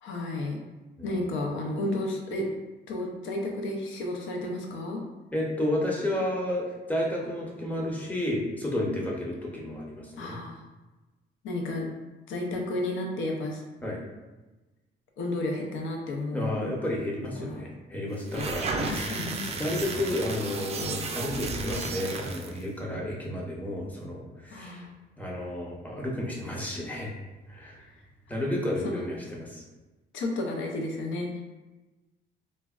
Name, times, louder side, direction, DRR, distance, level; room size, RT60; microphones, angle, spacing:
voice 1, 0.0-0.6 1.0-2.5 2.9-5.0 10.2-10.6 11.4-11.9 12.3-13.6 15.2-16.7 17.4-17.6 18.3-19.5 24.5-24.9 27.8-28.0 28.8-29.1 30.1-31.4, left 2 dB, 75° left, 1 dB, 0.5 m, -32 dB
voice 2, 5.3-10.4 13.8-14.0 16.3-19.3 19.6-24.9 25.2-27.1 27.5-27.8 28.3-29.6, left 1 dB, 10° left, -3 dB, 0.7 m, -31 dB
sound 1, 18.2-22.6, right 3 dB, 30° right, 0.3 m, -33 dB
3.2 x 2.1 x 2.3 m, 1.1 s
cardioid pair, 90°, 20 cm